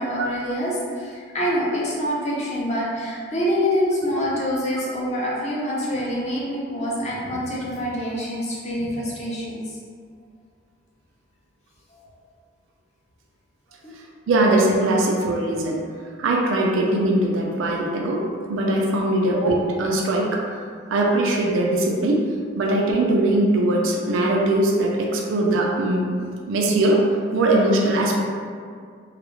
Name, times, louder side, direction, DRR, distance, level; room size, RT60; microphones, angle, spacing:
voice 1, 0.0-9.6 11.9-12.1 13.8-14.0, equal, 35° left, -6 dB, 0.5 m, -26 dB
voice 2, 14.3-15.8 16.2-18.2 18.5-20.4 20.9-22.3 22.6-26.1 26.4-27.0 27.3-28.2, right 1 dB, 75° right, -1 dB, 0.4 m, -20 dB
2.3 x 2.0 x 2.9 m, 2.1 s
head